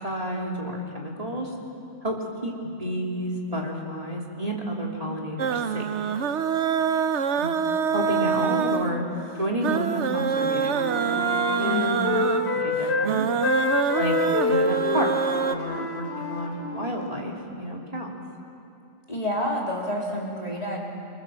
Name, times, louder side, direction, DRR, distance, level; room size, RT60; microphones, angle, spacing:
voice 1, 0.0-1.5 2.0-5.9 7.4-7.5 7.9-9.0 9.4-11.3 11.6-12.1 12.6-13.3 13.9-14.1 14.5-15.1 15.4-18.2, equal, 30° right, -2 dB, 3.0 m, -30 dB
sound 1, 5.4-15.6, right 7 dB, 65° right, 1.1 m, -26 dB
Wind instrument woodwind instrument, 10.0-13.1 13.4-17.2, left 3 dB, 55° left, 3.0 m, -28 dB
voice 2, 11.6-11.9 19.1-20.8, left 1 dB, 30° left, -3 dB, 3.6 m, -28 dB
26.5 x 25.0 x 7.5 m, 2.7 s
omnidirectional pair, 1.3 m